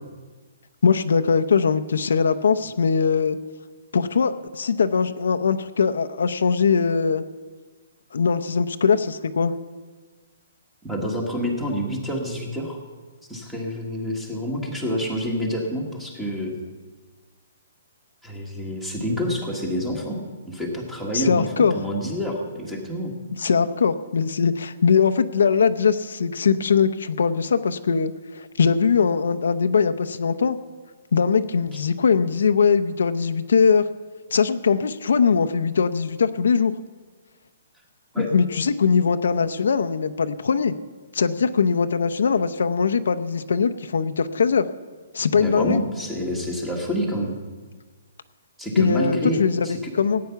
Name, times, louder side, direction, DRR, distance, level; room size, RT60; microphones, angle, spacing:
voice 1, 0.8-3.4 3.9-7.2 8.1-9.5 21.1-21.7 23.4-30.6 31.1-33.8 34.3-36.7 38.2-40.7 41.1-44.6 45.1-45.8 48.8-49.7 49.9-50.2, left 5 dB, 75° left, 10 dB, 0.7 m, -21 dB
voice 2, 10.8-12.8 13.3-16.5 18.2-20.2 20.5-23.1 38.1-38.3 45.3-47.4 48.6-49.9, equal, 5° right, -1 dB, 1.5 m, -28 dB
17.5 x 9.4 x 5.8 m, 1.4 s
hypercardioid pair, 180°, 0 cm